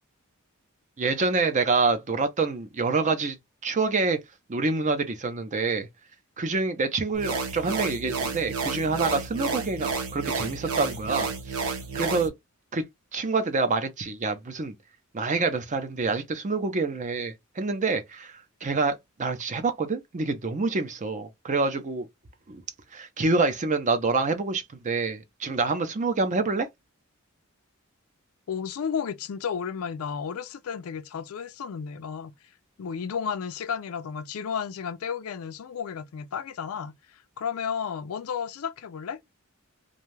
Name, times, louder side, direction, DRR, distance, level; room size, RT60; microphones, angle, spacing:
voice 1, 1.0-3.4 3.6-4.2 4.5-5.9 6.4-11.7 11.9-12.3 12.7-12.8 13.1-14.7 15.1-22.1 22.5-22.6 22.9-26.7, right 3 dB, 35° right, 0.5 m, -27 dB
sound 1, 7.1-12.3, right 4 dB, 75° right, 0.8 m, -31 dB
voice 2, 28.5-32.3 32.8-39.2, left 7 dB, 75° left, 0.4 m, -33 dB
2.6 x 2.2 x 3.1 m
head